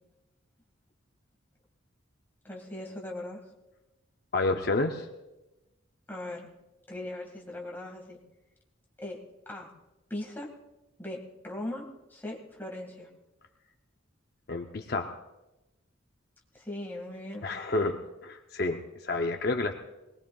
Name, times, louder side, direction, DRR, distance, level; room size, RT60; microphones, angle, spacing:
voice 1, 2.4-3.4 6.1-6.5 6.9-8.2 9.0-9.2 9.5-9.7 10.1-10.5 11.0-11.8 12.1-13.1 16.5-17.5, left 1 dB, 10° left, -1 dB, 1.9 m, -39 dB
voice 2, 4.3-5.1 14.5-15.1 17.4-19.7, left 2 dB, 50° left, 4 dB, 0.6 m, -30 dB
21.5 x 19.0 x 2.4 m, 1.0 s
head